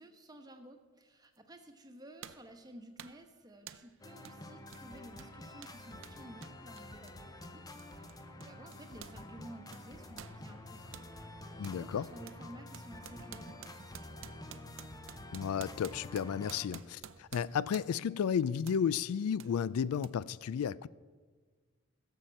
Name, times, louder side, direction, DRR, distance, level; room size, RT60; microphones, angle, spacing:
voice 1, 0.0-14.7, right 1 dB, 20° right, 1.1 m, -54 dB
sound 1, 1.4-1.5 2.2-2.5 3.0-3.3 3.7-3.9 4.2-4.4 4.7-9.2 9.5-11.1 11.6-11.8 12.3-18.1 18.7-18.9 19.4-19.5 20.0-20.1, right 9 dB, 60° right, 0.5 m, -52 dB
sound 2, 4.0-16.7, left 1 dB, 15° left, 0.7 m, -49 dB
voice 2, 11.6-12.1 15.3-20.9, left 7 dB, 80° left, 0.3 m, -33 dB
16.0 x 7.4 x 6.5 m
head